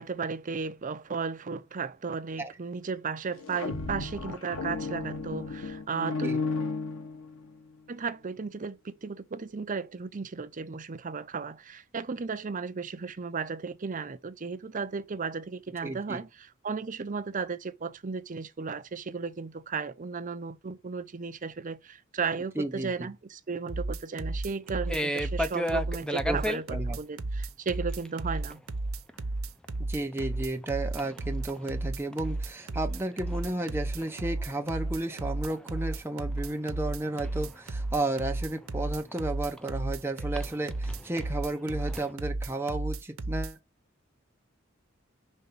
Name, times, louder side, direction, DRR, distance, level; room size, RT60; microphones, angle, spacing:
voice 1, 0.0-6.3 7.9-28.6, right 5 dB, 40° right, 0.6 m, -35 dB
sound 1, 3.3-7.6, left 3 dB, 90° left, 1.4 m, -34 dB
voice 2, 15.8-16.2 22.6-23.1 26.2-26.4 26.7-27.0 29.9-43.6, right 2 dB, 10° right, 0.9 m, -33 dB
sound 2, 23.7-43.5, right 2 dB, 85° right, 0.7 m, -33 dB
sound 3, 24.9-26.6 27.7-28.1 28.3-28.6 29.1-29.2 29.6-29.7 30.0-30.7 31.0-32.3 32.6-35.9 36.3-39.7 40.1-42.1, equal, 5° left, 0.4 m, -35 dB
5.4 x 3.4 x 5.5 m
head